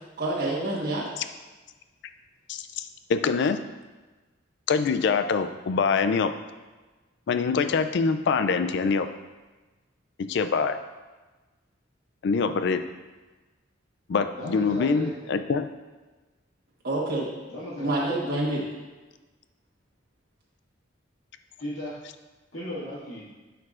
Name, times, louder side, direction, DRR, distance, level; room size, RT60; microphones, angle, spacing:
voice 1, 0.2-1.0 16.8-17.3 17.8-18.6, right 2 dB, 50° right, -6 dB, 1.3 m, -27 dB
voice 2, 2.5-3.6 4.7-6.3 7.3-9.1 10.3-10.8 12.2-12.8 14.1-15.7, left 5 dB, 60° left, 10 dB, 0.4 m, -24 dB
voice 3, 14.4-15.1 17.5-18.0 21.6-22.0 22.5-23.3, left 1 dB, 90° left, -11 dB, 1.9 m, -36 dB
10.5 x 4.6 x 2.5 m, 1.2 s
head